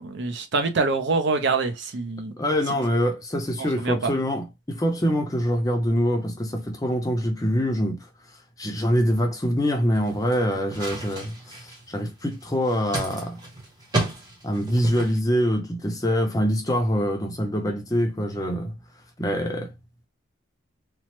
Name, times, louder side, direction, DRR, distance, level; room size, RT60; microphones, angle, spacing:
voice 1, 0.0-2.3 2.7-2.8 3.6-4.1, right 4 dB, 55° right, 0.5 m, -25 dB
voice 2, 2.4-8.1 8.6-13.4 14.4-18.7 19.2-19.7, equal, 15° left, 0.5 m, -24 dB
sound 1, 9.9-15.2, right 2 dB, 20° right, 0.8 m, -33 dB
3.1 x 2.0 x 2.9 m
head